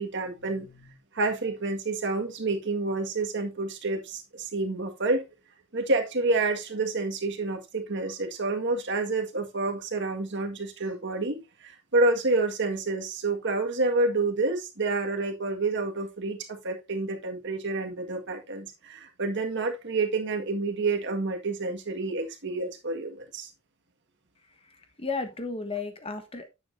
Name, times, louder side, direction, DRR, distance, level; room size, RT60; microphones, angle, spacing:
voice 1, 0.0-5.3 5.7-23.5, right 3 dB, 55° right, 1.7 m, -29 dB
voice 2, 24.6-26.5, left 4 dB, 25° left, 1.2 m, -34 dB
9.8 x 7.2 x 2.6 m
head